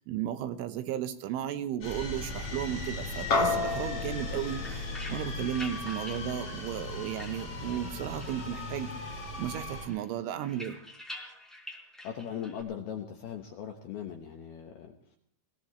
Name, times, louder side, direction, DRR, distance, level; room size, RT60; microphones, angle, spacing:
voice 1, 0.1-10.8, right 11 dB, 75° right, 10 dB, 3.3 m, -35 dB
sound 1, 1.8-9.9, left 3 dB, 35° left, 4.6 m, -38 dB
sound 2, 3.3-7.9, left 3 dB, 50° left, 2.1 m, -33 dB
sound 3, 4.2-7.9 8.2-9.1 9.4-12.6, left 1 dB, ahead, 3.4 m, -47 dB
voice 2, 12.0-15.2, left 9 dB, 70° left, 3 dB, 2.4 m, -39 dB
21.5 x 17.5 x 3.2 m, 0.66 s
omnidirectional pair, 5.9 m